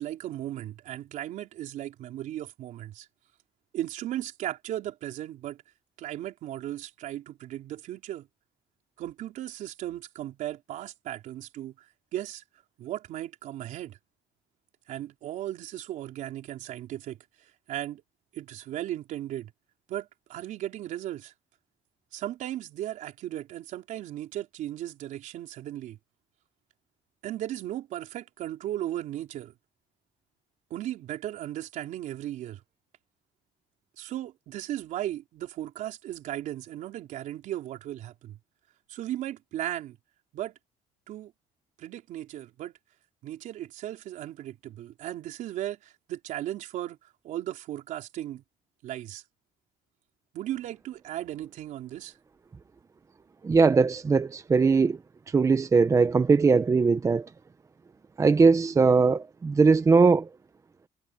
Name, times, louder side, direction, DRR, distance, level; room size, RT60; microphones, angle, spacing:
voice 1, 0.0-3.1 3.7-5.6 6.0-8.3 9.0-11.9 12.1-12.4 12.8-14.0 14.9-17.2 17.7-18.0 18.3-19.5 19.9-21.3 22.1-26.0 27.2-29.5 30.7-32.6 34.0-38.4 38.9-40.0 40.3-40.5 41.1-41.3 41.8-42.8 43.2-47.0 47.2-48.4 48.8-49.2 50.3-52.2, right 13 dB, 70° right, 3.8 m, -36 dB
voice 2, 53.4-55.0 55.3-57.3 58.2-60.3, right 4 dB, 25° right, 0.9 m, -20 dB
cardioid pair, 120°, 13 cm